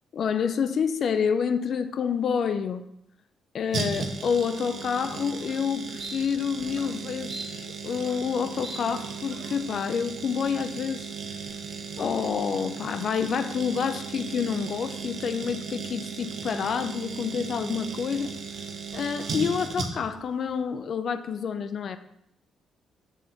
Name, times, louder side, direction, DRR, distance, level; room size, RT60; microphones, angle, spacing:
voice 1, 0.1-2.9 3.5-11.1 12.0-18.3 18.9-22.0, left 6 dB, 55° left, 0.6 m, -28 dB
sound 1, 3.7-20.2 20.5-20.6, right 5 dB, 60° right, 1.2 m, -36 dB
sound 2, 4.8-4.9 5.3-5.6 6.0-6.2 6.7-6.9 7.3-8.3 8.6-8.8 9.3-9.6, right 2 dB, 30° right, 1.6 m, -41 dB
7.3 x 3.9 x 5.8 m
cardioid pair, 90°, 0 cm